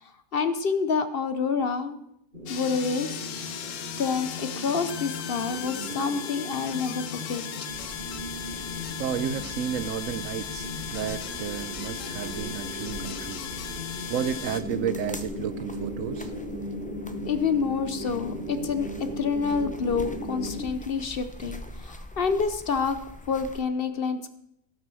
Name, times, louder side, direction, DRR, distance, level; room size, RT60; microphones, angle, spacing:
voice 1, 0.0-2.0 2.5-3.1 3.4-3.6 4.0-7.4 17.2-23.0 23.3-24.3, left 5 dB, 50° left, 10 dB, 0.8 m, -28 dB
sound 1, 2.3-20.6, left 1 dB, 35° right, 3.1 m, -37 dB
sound 2, 2.5-14.6, left 8 dB, 70° left, 1.1 m, -37 dB
sound 3, 7.7-23.6, left 1 dB, 10° left, 0.5 m, -44 dB
voice 2, 9.0-13.4 14.1-16.3, right 8 dB, 75° right, 14 dB, 1.0 m, -32 dB
16.0 x 6.0 x 6.2 m, 0.78 s
omnidirectional pair, 1.4 m